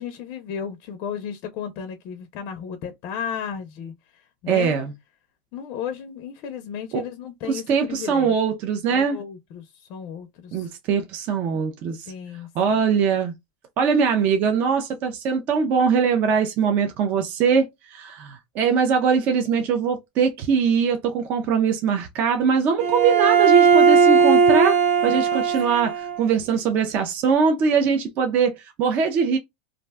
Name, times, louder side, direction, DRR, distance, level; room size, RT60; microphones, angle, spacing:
voice 1, 0.0-3.9 4.4-4.8 5.5-8.3 8.9-9.6 9.9-10.7 12.1-12.5 25.3-25.4, left 8 dB, 45° left, 0.4 m, -34 dB
voice 2, 4.5-4.9 6.9-7.0 7.4-9.2 10.5-12.1 12.6-13.3 13.8-24.8 25.0-29.4, right 6 dB, 35° right, 0.4 m, -22 dB
Bowed string instrument, 22.8-26.2, right 6 dB, 85° right, 1.1 m, -17 dB
2.4 x 2.1 x 3.3 m
supercardioid pair, 160°, 5 cm